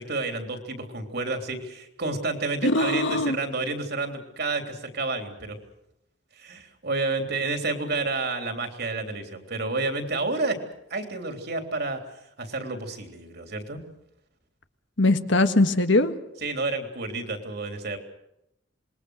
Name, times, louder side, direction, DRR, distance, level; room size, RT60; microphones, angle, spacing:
voice 1, 0.0-5.6 6.4-10.6 10.9-12.0 12.4-13.8 16.4-18.0, right 3 dB, 60° right, 5 dB, 3.5 m, -30 dB
voice 2, 2.6-3.4 15.0-16.1, left 2 dB, 70° left, 9 dB, 1.6 m, -21 dB
27.0 x 21.5 x 6.5 m, 0.84 s
head